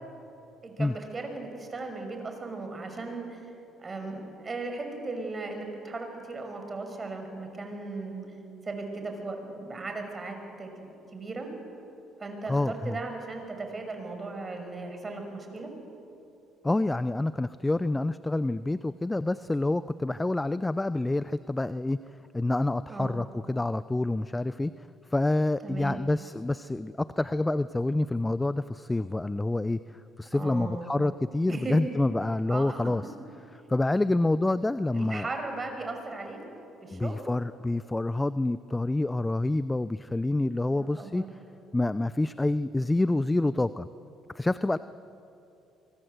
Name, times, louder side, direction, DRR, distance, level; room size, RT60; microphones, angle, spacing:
voice 1, 0.6-3.5 3.8-8.2 8.6-11.5 12.2-15.7 22.9-23.2 25.6-26.0 30.3-31.0 31.5-31.8 32.5-32.8 34.9-36.4 36.8-37.2 40.7-41.3, right 3 dB, 30° right, 5 dB, 5.8 m, -37 dB
voice 2, 12.5-13.0 16.6-22.0 22.3-33.0 33.7-35.3 36.9-41.2 41.7-43.9 44.3-44.8, left 2 dB, 15° left, 15 dB, 0.6 m, -27 dB
24.5 x 23.0 x 8.0 m, 2.8 s
supercardioid pair, 75°, 0 cm